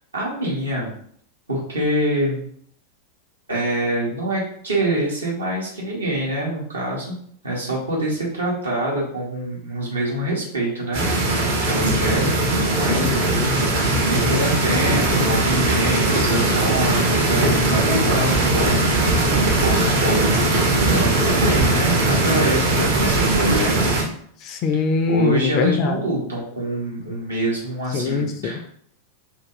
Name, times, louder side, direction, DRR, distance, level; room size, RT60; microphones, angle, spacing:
voice 1, 0.1-0.9 1.5-2.4 3.5-7.2 7.4-11.0 11.6-13.4 14.1-18.7 19.4-23.9 25.1-28.7, right 1 dB, 75° right, -4 dB, 0.9 m, -25 dB
sound 1, 10.9-24.0, right 2 dB, 55° right, 0.6 m, -19 dB
voice 2, 12.9-13.8 24.4-26.0 27.9-28.6, left 5 dB, 35° left, 6 dB, 0.4 m, -23 dB
2.6 x 2.2 x 3.1 m, 0.62 s
figure-of-eight pair, 90°, 0 cm